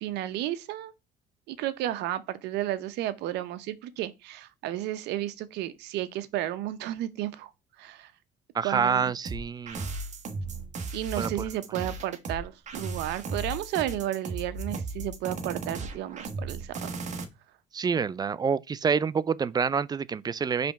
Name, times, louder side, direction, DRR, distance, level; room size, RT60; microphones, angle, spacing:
voice 1, 0.0-0.9 1.5-7.5 7.8-8.1 8.6-9.1 10.9-16.9, right 13 dB, 85° right, 0.7 m, -32 dB
voice 2, 8.5-9.9 11.2-11.3 17.7-20.7, right 6 dB, 25° right, 0.4 m, -27 dB
sound 1, 9.3-17.2, right 3 dB, 45° right, 1.3 m, -35 dB
5.1 x 3.4 x 5.7 m
cardioid pair, 110°, 17 cm